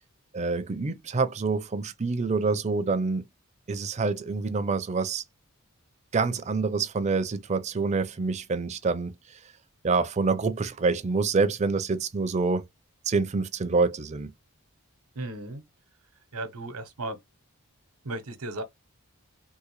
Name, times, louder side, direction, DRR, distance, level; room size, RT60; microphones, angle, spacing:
voice 1, 0.3-3.3 3.7-5.2 6.1-9.1 9.8-12.6 13.1-14.3, right 4 dB, 30° right, 0.4 m, -26 dB
voice 2, 15.1-15.6 16.3-17.2 18.0-18.6, right 2 dB, 85° right, 0.9 m, -35 dB
3.7 x 2.5 x 3.1 m
head